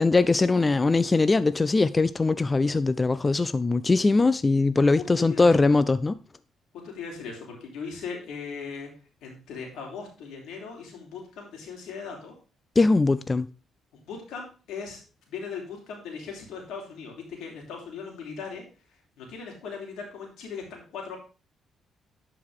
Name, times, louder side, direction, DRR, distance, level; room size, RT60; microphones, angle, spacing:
voice 1, 0.0-6.2 12.8-13.5, left 3 dB, 25° left, 0.3 m, -21 dB
voice 2, 5.0-5.7 6.8-8.9 9.2-12.3 13.9-15.0 15.3-18.6 19.2-21.2, left 5 dB, 85° left, 2.9 m, -38 dB
11.0 x 4.9 x 3.6 m
cardioid pair, 90°, 0 cm